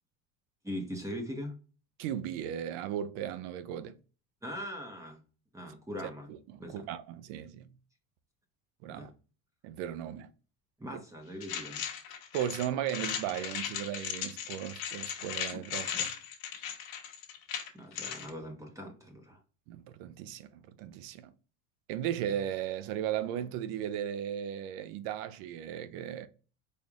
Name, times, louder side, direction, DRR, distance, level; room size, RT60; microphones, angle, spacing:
voice 1, 0.6-1.5 4.4-5.2 5.5-6.3 6.6-6.9 8.9-9.1 10.8-11.8 17.7-19.4, equal, 10° right, 1.0 m, -41 dB
voice 2, 2.0-4.0 6.3-7.7 8.8-9.1 9.6-10.3 10.9-11.0 12.3-16.1 19.7-21.3 21.9-26.3, right 10 dB, 75° right, 0.7 m, -36 dB
sound 1, 11.4-18.3, left 8 dB, 70° left, 1.2 m, -37 dB
4.3 x 3.3 x 2.3 m
supercardioid pair, 110°, 39 cm